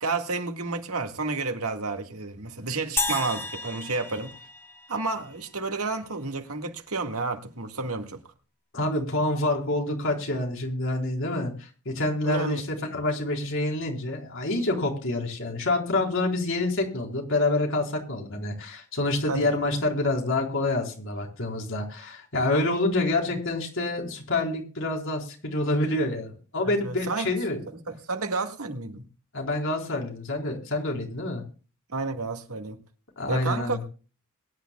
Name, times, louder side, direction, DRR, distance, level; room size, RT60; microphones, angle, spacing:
voice 1, 0.0-4.3 4.9-8.2 12.2-12.6 19.3-19.5 26.6-27.3 27.9-29.1 31.9-32.8 33.3-33.8, right 3 dB, 85° right, 1.9 m, -31 dB
sound 1, 3.0-5.4, left 3 dB, 10° left, 2.0 m, -32 dB
voice 2, 8.7-27.6 29.3-31.4 33.2-33.8, left 2 dB, 65° left, 4.3 m, -27 dB
22.5 x 10.5 x 2.3 m
head